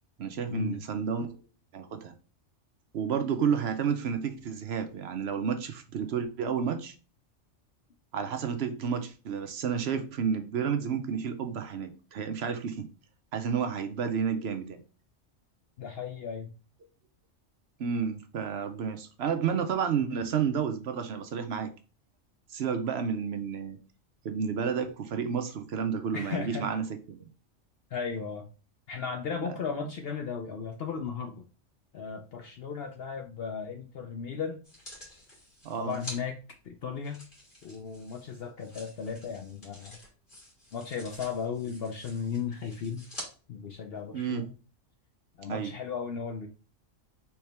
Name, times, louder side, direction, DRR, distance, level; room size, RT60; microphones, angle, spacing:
voice 1, 0.2-1.3 1.7-2.1 2.9-6.9 8.1-12.9 13.3-14.8 17.8-21.7 22.5-23.8 24.2-27.3 29.4-29.9 35.6-35.9 44.1-44.4 45.5-45.7, right 7 dB, 60° right, 7 dB, 0.8 m, -31 dB
voice 2, 15.8-16.5 26.1-26.7 27.9-28.5 28.9-31.4 31.9-34.6 35.8-36.4 36.6-37.2 37.6-40.0 40.7-43.1 43.5-44.5 45.4-46.5, left 6 dB, 60° left, 4 dB, 0.7 m, -35 dB
sound 1, 34.6-36.2 37.0-43.3 43.9-44.0, left 1 dB, 40° left, 2.0 m, -48 dB
4.6 x 3.5 x 3.3 m, 0.35 s
omnidirectional pair, 1.3 m